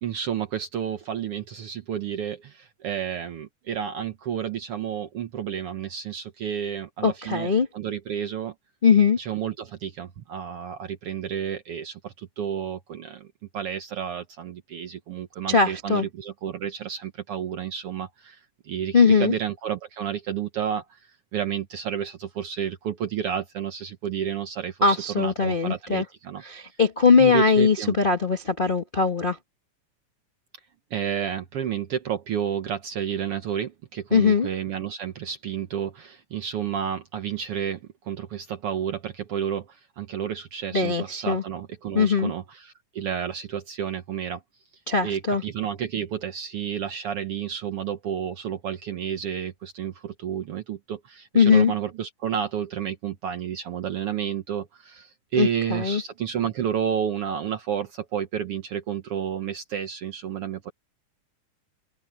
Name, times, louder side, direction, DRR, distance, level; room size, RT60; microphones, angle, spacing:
voice 1, 0.0-8.5 9.2-13.3 13.5-21.0 21.3-26.4 27.2-28.0 30.9-44.4 45.0-60.7, right 9 dB, 65° right, 1.5 m, -31 dB
voice 2, 7.0-7.7 8.8-9.2 15.5-16.0 18.9-19.3 24.8-26.0 26.4-29.4 34.1-34.5 40.7-41.4 41.9-42.3 44.9-45.4 51.3-51.7 55.4-56.0, left 5 dB, 40° left, 0.7 m, -20 dB
omnidirectional pair, 3.6 m